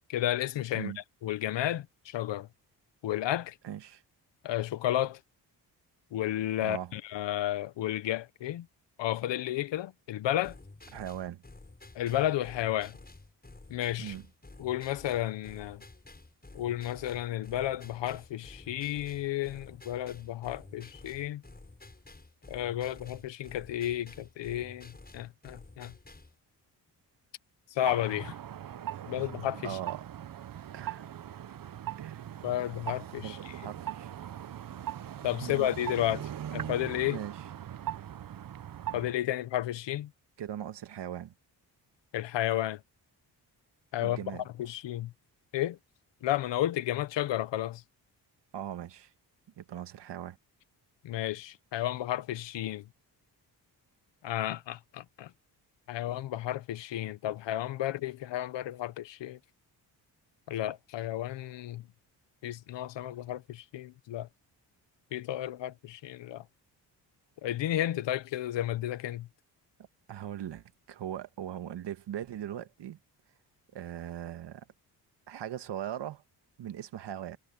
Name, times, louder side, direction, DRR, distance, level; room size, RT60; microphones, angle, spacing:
voice 1, 0.1-0.9 1.2-2.5 3.0-3.5 4.4-5.2 6.1-8.7 9.0-10.5 11.9-12.9 13.7-14.1 14.6-15.8 16.5-21.4 22.5-25.9 27.7-28.3 29.1-29.8 32.4-33.4 35.2-37.2 38.9-40.1 42.1-42.8 43.9-44.2 44.6-45.1 45.5-45.8 46.2-47.8 51.0-52.8 54.2-55.3 55.9-59.4 60.5-61.8 62.4-64.3 65.1-66.4 67.4-69.3, left 13 dB, 85° left, 1.3 m, -32 dB
voice 2, 3.6-4.0 6.6-6.9 10.9-11.4 14.0-14.3 29.6-30.0 30.7-31.0 32.0-32.3 33.2-34.1 35.4-35.7 37.1-37.5 40.4-41.3 44.0-44.5 48.5-49.1 49.6-50.4 70.1-73.0 73.7-74.7 75.3-76.2 76.6-77.4, right 10 dB, 75° right, 1.9 m, -39 dB
sound 1, 10.4-26.4, left 2 dB, 20° left, 7.4 m, -51 dB
sound 2, 27.8-39.2, right 11 dB, 50° right, 0.9 m, -40 dB
cardioid pair, 70°, 42 cm